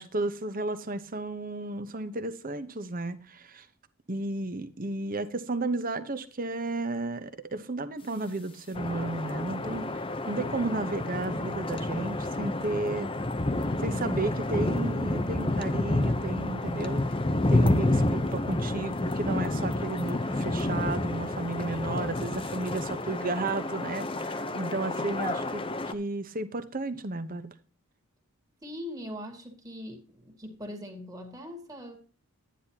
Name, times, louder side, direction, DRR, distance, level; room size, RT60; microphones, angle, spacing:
voice 1, 0.0-3.7 4.1-9.9 10.3-13.1 13.8-17.0 17.5-27.5, right 2 dB, 40° right, 0.9 m, -33 dB
sound 1, 8.8-25.9, left 2 dB, 25° left, 0.7 m, -29 dB
voice 2, 28.6-32.0, left 1 dB, 15° right, 2.0 m, -41 dB
11.5 x 10.0 x 2.9 m
head